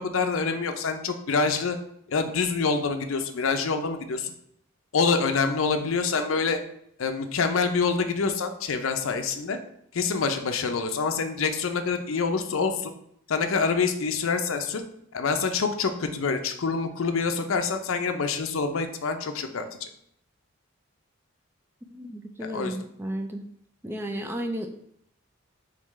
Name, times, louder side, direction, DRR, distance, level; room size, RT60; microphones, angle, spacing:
voice 1, 0.0-1.8 2.1-4.3 4.9-6.6 7.0-9.6 9.9-12.9 13.3-14.8 15.1-19.9 22.4-22.8, left 4 dB, 70° left, 6 dB, 0.5 m, -26 dB
voice 2, 21.9-23.5 23.8-24.7, equal, 10° right, 5 dB, 0.3 m, -33 dB
3.9 x 3.6 x 3.1 m, 0.69 s
head